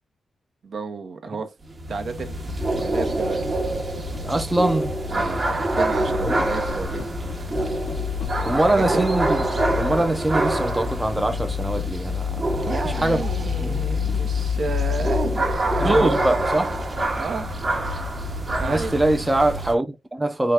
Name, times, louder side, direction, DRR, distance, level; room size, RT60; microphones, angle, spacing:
voice 1, 0.6-1.5 1.9-3.6 5.1-7.8 8.5-8.8 12.7-15.5 15.8-16.2 17.2-17.5 18.6-19.0, right 4 dB, 60° right, 0.7 m, -32 dB
sound 1, 1.6-19.7, equal, 35° right, 0.9 m, -25 dB
sound 2, 1.9-15.1, left 7 dB, 70° left, 0.5 m, -43 dB
voice 2, 4.2-4.9 6.2-6.4 8.4-9.4 9.8-13.2 13.6-13.8 15.8-16.8 18.6-20.5, right 2 dB, 15° right, 0.5 m, -23 dB
3.8 x 2.3 x 3.4 m
cardioid pair, 100°, 0 cm